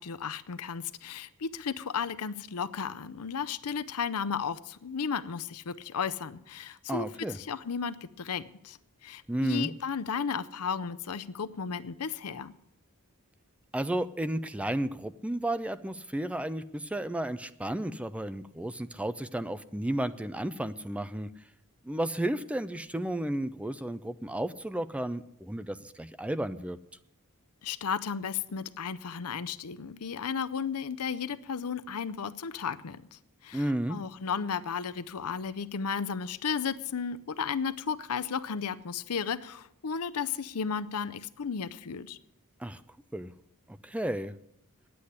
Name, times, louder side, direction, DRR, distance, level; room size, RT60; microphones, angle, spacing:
voice 1, 0.0-12.5 27.6-42.2, left 6 dB, 80° left, 14 dB, 0.6 m, -34 dB
voice 2, 6.9-7.4 9.3-9.7 13.7-21.3 21.8-26.8 33.5-34.0 42.6-42.8 43.1-43.3 43.7-44.3, right 1 dB, 5° right, 12 dB, 0.4 m, -33 dB
10.0 x 8.6 x 9.5 m, 0.76 s
head